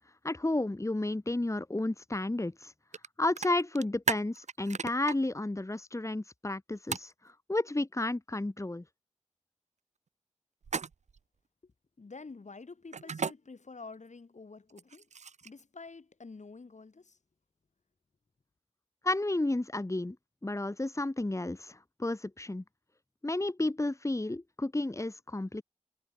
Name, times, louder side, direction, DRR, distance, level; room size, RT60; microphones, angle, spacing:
voice 1, 0.2-2.7 3.2-8.8 19.0-20.2 20.4-22.6 23.2-25.6, left 2 dB, 25° left, 1.3 m, -32 dB
sound 1, 2.9-3.1 3.4-5.2 6.9-7.1 10.6-11.2 12.9-13.3 14.7-15.6, right 5 dB, 75° right, 0.5 m, -34 dB
voice 2, 12.0-15.1 15.4-17.2, left 4 dB, 80° left, 4.3 m, -48 dB
wide cardioid pair, 55°, 12 cm